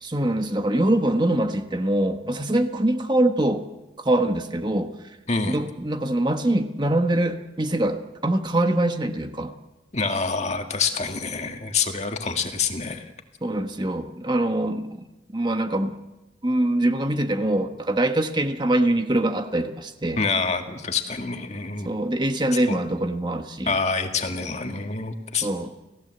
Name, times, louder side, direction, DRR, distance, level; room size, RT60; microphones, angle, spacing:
voice 1, 0.0-3.6 4.0-5.2 5.4-9.5 13.4-15.0 15.3-15.9 16.4-20.2 21.8-23.7 25.4-25.7, right 1 dB, 25° right, 7 dB, 1.2 m, -24 dB
voice 2, 9.9-13.0 20.2-21.9 22.7-22.8 23.7-25.5, left 4 dB, 40° left, 5 dB, 2.0 m, -26 dB
30.0 x 16.5 x 7.9 m, 1.0 s
head